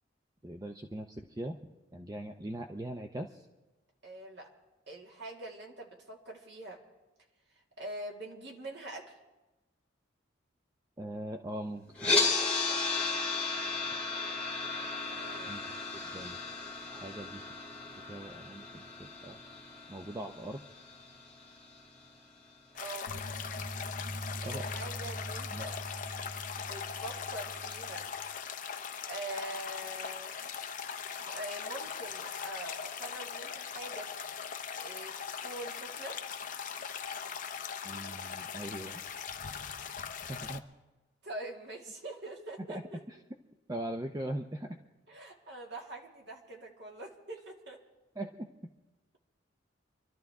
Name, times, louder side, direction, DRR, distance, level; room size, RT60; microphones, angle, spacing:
voice 1, 0.4-3.5 11.0-12.2 15.5-15.6 16.1-16.4 16.9-17.4 18.1-19.4 19.9-20.6 24.4-24.6 25.5-25.7 37.8-39.0 40.3-40.6 42.6-42.8 43.1-43.2 43.7-44.8 48.2-48.5, right 1 dB, 20° right, 5 dB, 0.5 m, -40 dB
voice 2, 4.0-4.5 4.9-6.8 7.8-9.1 15.1-15.6 22.7-23.3 24.4-25.8 26.6-28.1 29.0-30.5 31.2-34.1 34.8-36.2 41.2-43.0 45.1-47.8, right 1 dB, 55° right, 0 dB, 2.3 m, -44 dB
sound 1, 12.0-22.1, left 3 dB, 5° left, 2.5 m, -34 dB
sound 2, 22.8-40.6, left 7 dB, 40° left, 0.7 m, -40 dB
sound 3, 23.1-28.1, equal, 75° right, 6.5 m, -43 dB
25.5 x 12.5 x 3.6 m, 1.1 s
head